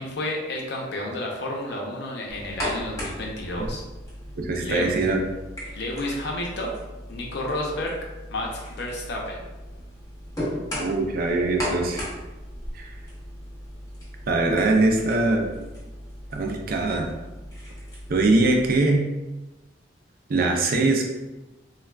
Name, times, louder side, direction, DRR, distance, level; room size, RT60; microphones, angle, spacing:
voice 1, 0.0-3.8 4.6-5.1 5.7-6.7 7.1-7.9 8.3-9.4, left 1 dB, 60° left, -1 dB, 0.6 m, -31 dB
sound 1, 2.3-18.8, equal, 20° left, 0.7 m, -37 dB
voice 2, 4.4-5.2 10.8-12.1 12.7-12.9 14.3-15.5 16.3-17.1 18.1-19.1 20.3-21.0, right 2 dB, 50° right, 2 dB, 0.4 m, -22 dB
3.3 x 2.2 x 2.2 m, 1.1 s
head